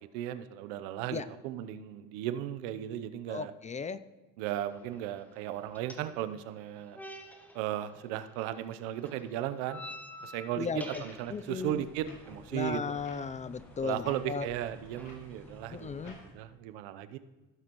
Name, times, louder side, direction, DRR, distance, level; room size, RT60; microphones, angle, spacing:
voice 1, 0.0-3.5 4.4-7.0 7.5-9.8 10.2-12.8 13.8-17.2, right 12 dB, 85° right, 12 dB, 0.7 m, -36 dB
voice 2, 3.3-4.0 10.6-11.0 11.3-11.8 12.5-14.5 15.7-16.2, left 5 dB, 25° left, 15 dB, 0.4 m, -36 dB
sound 1, 4.6-16.1, left 1 dB, 5° left, 1.3 m, -52 dB
sound 2, 10.6-16.3, left 1 dB, 70° left, 2.8 m, -53 dB
15.5 x 7.3 x 3.0 m, 1.1 s
supercardioid pair, 90°, 32 cm